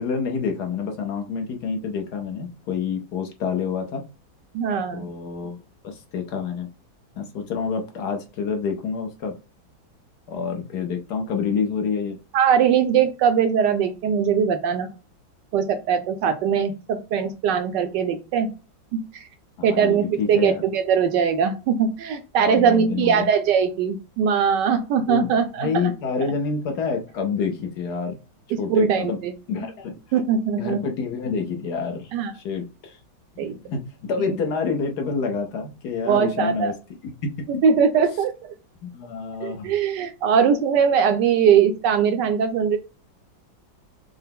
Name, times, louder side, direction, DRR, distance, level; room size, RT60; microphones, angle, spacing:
voice 1, 0.0-4.0 4.9-6.7 7.2-9.3 10.3-12.2 19.6-20.6 22.4-23.3 25.1-25.3 25.6-28.2 28.6-29.2 29.5-29.9 30.6-33.0 33.4-36.7 38.8-39.7, left 5 dB, 65° left, 4 dB, 1.1 m, -28 dB
voice 2, 4.5-5.1 12.3-14.9 15.5-18.5 18.9-19.2 19.6-25.7 28.5-29.3 30.1-30.8 32.1-32.3 33.4-33.6 36.1-36.7 37.6-38.5 39.4-42.8, right 7 dB, 75° right, 8 dB, 1.1 m, -21 dB
5.6 x 2.0 x 3.5 m, 0.32 s
omnidirectional pair, 2.1 m